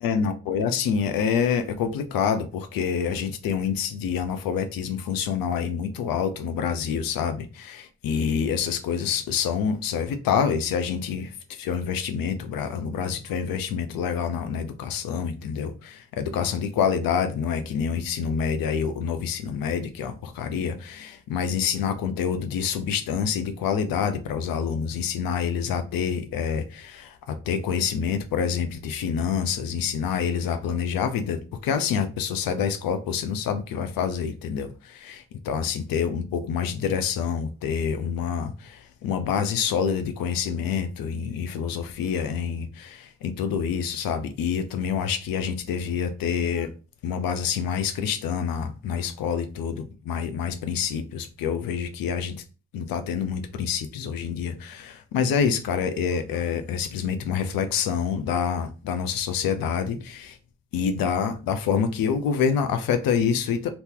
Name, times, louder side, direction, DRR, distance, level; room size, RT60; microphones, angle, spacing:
voice 1, 0.0-11.3 11.6-46.7 47.0-52.3 52.7-60.4 60.7-63.7, left 7 dB, 75° left, 0.7 m, -27 dB
2.9 x 2.8 x 3.6 m
supercardioid pair, 55°, 35 cm